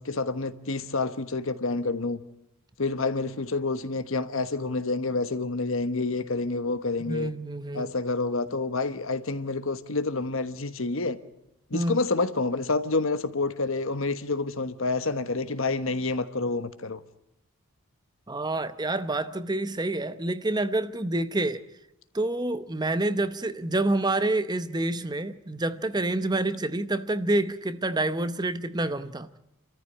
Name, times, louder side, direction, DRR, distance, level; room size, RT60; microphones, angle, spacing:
voice 1, 0.0-2.2 2.8-7.3 7.7-11.2 11.7-17.0, left 3 dB, 65° left, 1.2 m, -28 dB
voice 2, 7.0-7.9 11.7-12.0 18.3-21.6 22.1-29.4, right 2 dB, 20° right, 0.8 m, -28 dB
28.0 x 14.0 x 9.8 m
head